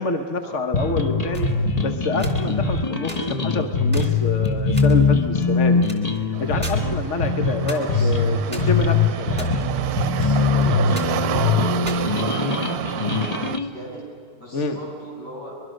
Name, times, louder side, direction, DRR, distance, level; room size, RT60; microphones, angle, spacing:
voice 1, 0.0-1.5 1.8-5.8 6.4-9.5 14.5-14.8, left 3 dB, 45° left, 6 dB, 1.4 m, -27 dB
sound 1, 0.7-13.7, left 4 dB, 25° left, 1.0 m, -22 dB
sound 2, 1.3-1.6 2.1-2.8 3.1-3.2 3.6-3.7 3.9-4.1 4.4-4.9 5.4-6.2 6.5-6.8 7.0-7.1 7.7-8.1 8.5-9.8 10.0-10.6 10.9-11.1 11.7-12.8, right 1 dB, 5° right, 2.8 m, -37 dB
sound 3, 6.3-13.6, right 10 dB, 70° right, 1.1 m, -29 dB
voice 2, 7.6-8.6 9.9-14.0 14.3-15.6, equal, 75° left, -4 dB, 8.8 m, -39 dB
24.0 x 22.0 x 6.5 m, 2.5 s
omnidirectional pair, 1.8 m